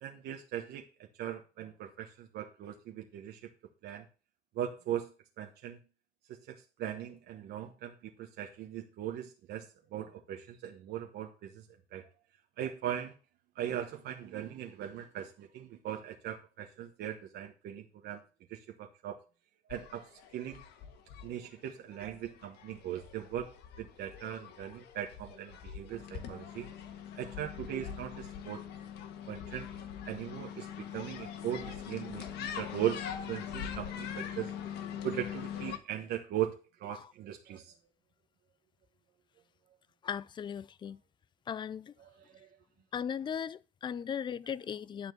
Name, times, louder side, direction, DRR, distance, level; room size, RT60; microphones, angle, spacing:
voice 1, 0.0-3.5 3.8-4.1 4.5-5.8 6.3-11.6 11.9-12.1 12.6-13.1 13.5-18.2 18.5-19.2 19.7-20.6 21.2-23.5 23.8-26.7 27.1-28.6 29.3-29.7 30.0-33.0 33.3-34.5 35.0-36.5 36.8-37.7 42.0-42.6, right 11 dB, 75° right, 1.2 m, -39 dB
sound 1, 19.7-35.8, left 8 dB, 80° left, 1.5 m, -43 dB
voice 2, 40.0-41.0 41.5-41.9 42.9-45.1, left 8 dB, 30° left, 0.4 m, -37 dB
11.5 x 4.4 x 6.9 m
cardioid pair, 110°, 17 cm